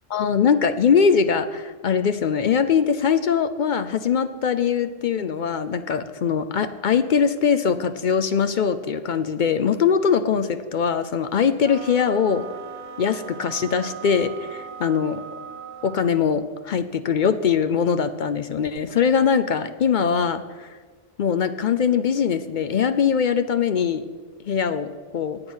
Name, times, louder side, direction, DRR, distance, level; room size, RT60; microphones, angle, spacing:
voice 1, 0.1-12.5 13.0-15.2 15.8-20.7 21.2-24.1 24.5-25.4, left 7 dB, 60° left, 11 dB, 0.6 m, -22 dB
sound 1, 11.6-16.3, right 8 dB, 85° right, 0.9 m, -39 dB
9.5 x 8.7 x 6.2 m, 1.5 s
omnidirectional pair, 1.0 m